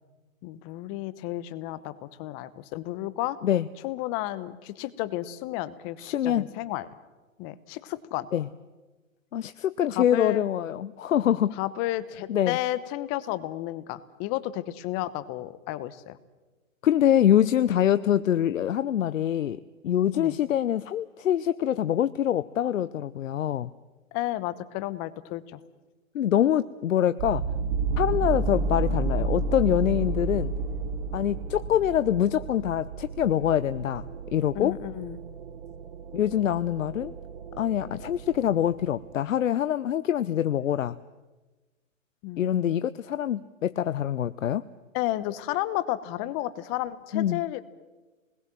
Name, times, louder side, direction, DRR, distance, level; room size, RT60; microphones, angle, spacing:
voice 1, 0.4-1.9 2.2-3.4 3.8-6.9 7.4-8.3 9.9-10.4 11.6-16.2 20.1-20.3 24.1-25.6 34.5-35.2 42.2-42.7 44.9-47.6, left 15 dB, 25° left, 15 dB, 1.0 m, -32 dB
voice 2, 6.0-6.5 8.3-8.5 9.3-11.6 12.3-12.6 16.8-19.6 19.8-23.7 26.1-27.5 28.0-30.5 31.1-34.8 36.1-37.1 37.6-41.0 42.4-44.6 47.1-47.4, left 10 dB, 70° left, 14 dB, 0.8 m, -25 dB
sound 1, 27.2-39.1, right 3 dB, 50° right, 1.6 m, -32 dB
27.0 x 21.0 x 7.6 m, 1.2 s
hypercardioid pair, 140°, 40 cm